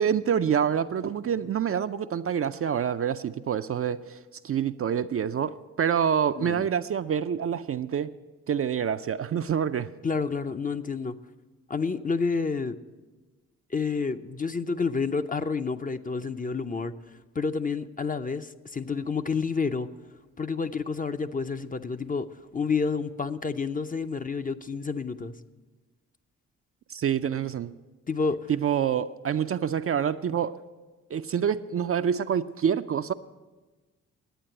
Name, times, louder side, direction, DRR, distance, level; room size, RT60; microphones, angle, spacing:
voice 1, 0.0-8.1 8.5-9.9 26.9-27.7 28.5-30.6 31.1-33.1, right 8 dB, 40° right, 10 dB, 0.4 m, -27 dB
voice 2, 10.0-11.2 11.7-12.8 13.7-16.9 17.3-19.9 20.4-22.3 22.5-25.3 28.1-28.5, left 4 dB, 25° left, 10 dB, 0.6 m, -29 dB
10.0 x 8.7 x 7.8 m, 1.3 s
hypercardioid pair, 40°, 36 cm